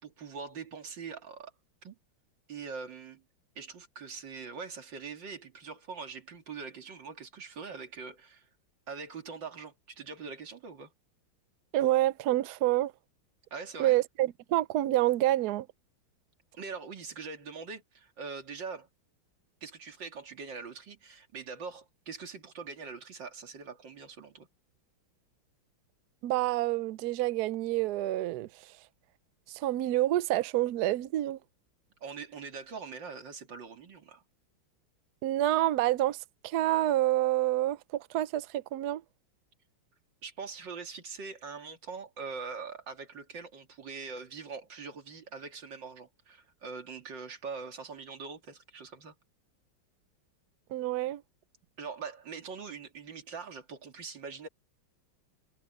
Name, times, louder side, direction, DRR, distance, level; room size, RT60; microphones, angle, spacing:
voice 1, 0.0-1.5 1.8-2.0 2.5-3.2 3.6-8.5 8.9-10.9 13.5-14.0 16.5-18.9 19.6-24.5 32.0-34.2 40.2-49.1 51.8-54.5, right 5 dB, 60° right, 3.0 m, -43 dB
voice 2, 11.7-12.9 13.8-15.7 26.2-28.5 29.5-31.4 35.2-39.0 50.7-51.2, right 15 dB, 80° right, 0.9 m, -28 dB
omnidirectional pair, 2.3 m